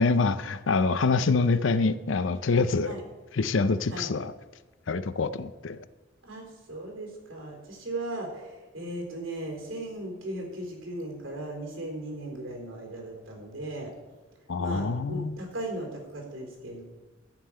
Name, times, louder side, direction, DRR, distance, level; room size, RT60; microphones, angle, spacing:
voice 1, 0.0-2.9 3.4-4.3 4.9-5.8 14.5-15.4, left 4 dB, 70° left, 14 dB, 0.6 m, -25 dB
voice 2, 6.2-13.9 14.6-16.8, right 1 dB, 90° right, 1 dB, 4.0 m, -37 dB
13.5 x 5.6 x 8.7 m, 1.2 s
head